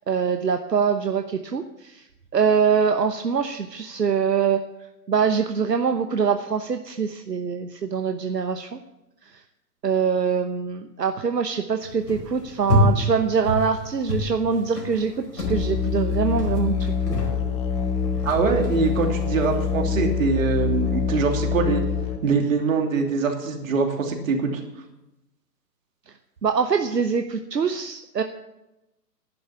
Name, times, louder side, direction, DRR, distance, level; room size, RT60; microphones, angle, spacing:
voice 1, 0.1-2.0 2.3-4.6 5.1-8.8 9.3-9.4 9.8-17.2 26.4-28.2, right 6 dB, 75° right, 7 dB, 1.0 m, -24 dB
sound 1, 11.8-20.1, left 1 dB, 75° left, 4.8 m, -29 dB
Musical instrument, 15.4-22.2, left 6 dB, 10° left, 1.1 m, -25 dB
voice 2, 18.2-21.8 22.2-24.5, right 4 dB, 50° right, 2 dB, 3.0 m, -23 dB
11.5 x 11.0 x 6.9 m, 0.93 s
figure-of-eight pair, 125°, 49 cm